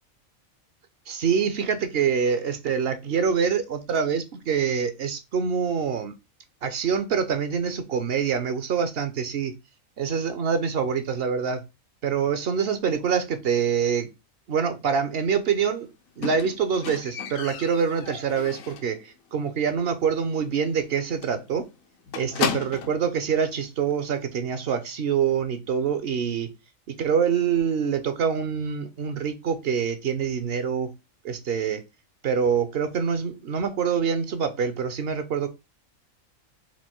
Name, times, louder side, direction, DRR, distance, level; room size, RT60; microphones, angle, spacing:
voice 1, 1.1-6.2 6.6-9.5 10.0-11.6 12.0-14.1 14.5-15.9 16.2-21.7 22.1-26.5 26.9-30.9 31.2-31.8 32.2-35.5, right 6 dB, 60° right, 0.7 m, -25 dB
Squeak, 16.2-19.0 19.3-19.7 20.0-20.1 20.5-20.6 20.8-21.0 21.2-23.1 23.9-24.0, left 7 dB, 85° left, 1.1 m, -33 dB
4.5 x 2.5 x 4.3 m
omnidirectional pair, 1.4 m